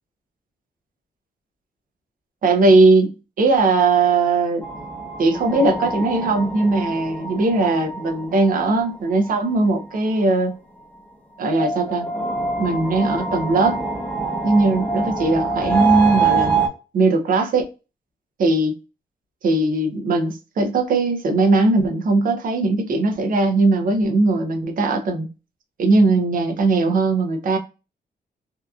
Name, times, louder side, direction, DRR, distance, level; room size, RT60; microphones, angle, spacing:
voice 1, 2.4-4.6 5.2-10.5 11.4-12.1 12.6-13.8 14.4-16.6 16.9-17.7 18.4-18.7 19.4-25.3 25.8-27.6, right 3 dB, 55° right, 0.5 m, -19 dB
sound 1, 4.6-10.0 11.4-16.7, right 4 dB, 10° left, 0.5 m, -25 dB
2.7 x 2.3 x 2.3 m
wide cardioid pair, 135°, 17 cm